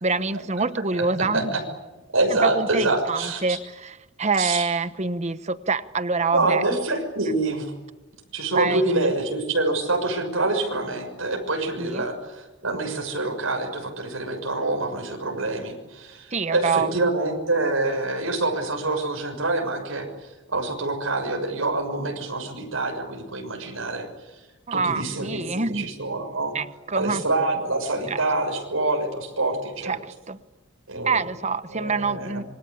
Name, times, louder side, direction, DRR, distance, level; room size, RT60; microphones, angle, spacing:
voice 1, 0.0-1.6 2.4-6.6 8.5-9.1 11.8-12.1 16.3-16.9 24.7-25.9 26.5-27.2 28.1-28.2 29.8-30.4 31.0-32.4, right 4 dB, 35° right, 12 dB, 1.1 m, -26 dB
voice 2, 2.1-3.6 4.4-4.7 6.3-7.7 8.3-24.1 24.7-26.5 26.9-30.0 30.9-31.2 31.7-32.4, right 2 dB, 85° right, 2 dB, 6.4 m, -26 dB
27.0 x 24.0 x 8.6 m, 1.1 s
head